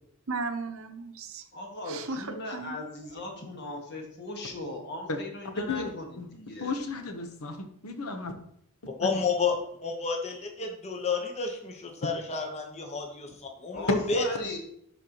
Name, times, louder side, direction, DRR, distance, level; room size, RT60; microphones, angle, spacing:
voice 1, 0.3-1.4 1.8-2.8, right 3 dB, 65° right, 8 dB, 0.8 m, -35 dB
voice 2, 1.5-6.7 13.7-14.6, left 2 dB, 50° left, 2 dB, 1.5 m, -38 dB
voice 3, 5.6-5.9 6.2-6.3 6.6-8.3 9.0-9.1, left 3 dB, 80° left, 7 dB, 1.0 m, -34 dB
voice 4, 9.0-14.2, left 5 dB, 30° left, 3 dB, 1.0 m, -30 dB
11.5 x 4.3 x 3.0 m, 0.71 s
head